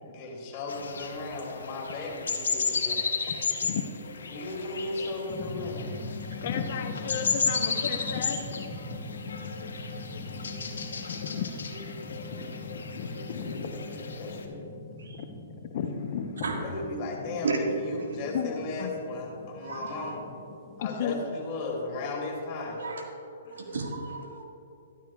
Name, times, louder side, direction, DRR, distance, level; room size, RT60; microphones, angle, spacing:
voice 1, 0.0-3.0 4.3-5.9 13.2-14.6 16.6-20.2 20.8-22.9, left 2 dB, 40° left, -1 dB, 2.6 m, -36 dB
sound 1, 0.7-14.4, left 5 dB, 80° left, 0.9 m, -34 dB
voice 2, 3.3-4.1 6.4-9.3 10.2-10.5 11.1-13.7 15.2-15.3 15.7-16.6 18.1-18.9 20.8-21.2 23.5-23.8, left 7 dB, 55° left, 7 dB, 0.7 m, -35 dB
sound 2, 5.3-21.1, left 3 dB, 20° left, 1.0 m, -42 dB
voice 3, 19.6-19.9 22.8-23.0 23.5-24.4, right 4 dB, 80° right, 1 dB, 1.7 m, -33 dB
12.5 x 12.5 x 2.3 m, 2.7 s
hypercardioid pair, 130°, 0 cm